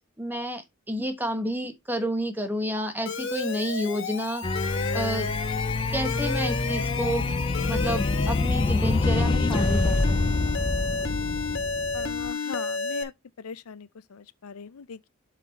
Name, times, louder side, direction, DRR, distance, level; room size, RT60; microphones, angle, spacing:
voice 1, 0.2-4.5 4.9-5.3 5.9-7.3 7.7-10.4, equal, 10° right, 1.2 m, -30 dB
Alarm, 3.1-13.0, left 4 dB, 60° left, 1.0 m, -32 dB
sound 1, 4.4-12.3, left 3 dB, 25° left, 0.4 m, -26 dB
voice 2, 11.9-13.1 13.4-15.1, left 6 dB, 90° left, 0.5 m, -40 dB
7.4 x 4.0 x 4.2 m
head